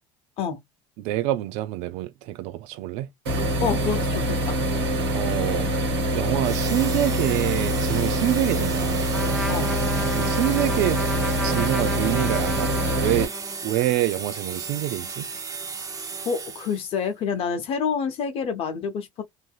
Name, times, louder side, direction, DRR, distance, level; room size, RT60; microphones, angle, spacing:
voice 1, 1.0-3.1 5.1-5.7 6.1-9.0 10.1-11.0 11.3-13.3 13.6-15.3, right 15 dB, 65° right, 0.4 m, -26 dB
sound 1, 3.2-13.2, right 1 dB, 85° right, 1.1 m, -25 dB
voice 2, 3.6-4.6 9.5-9.7 16.3-19.2, left 6 dB, 50° left, 0.8 m, -27 dB
sound 2, 6.4-17.0, right 5 dB, 30° right, 0.7 m, -35 dB
Trumpet, 9.1-13.7, left 1 dB, ahead, 0.4 m, -33 dB
2.6 x 2.6 x 2.3 m
hypercardioid pair, 75°, 12 cm